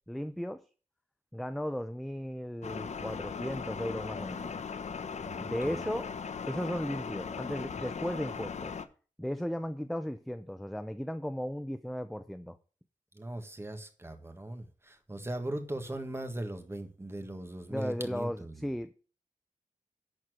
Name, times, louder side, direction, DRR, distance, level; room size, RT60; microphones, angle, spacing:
voice 1, 0.1-0.6 1.3-4.5 5.4-6.1 6.5-8.8 9.2-12.6 17.7-18.9, equal, ahead, 0.5 m, -36 dB
sound 1, 2.6-8.8, left 5 dB, 65° left, 0.8 m, -38 dB
voice 2, 5.2-5.8 13.1-18.7, right 1 dB, 20° right, 1.6 m, -39 dB
11.0 x 4.4 x 7.7 m
wide cardioid pair, 125°, 13 cm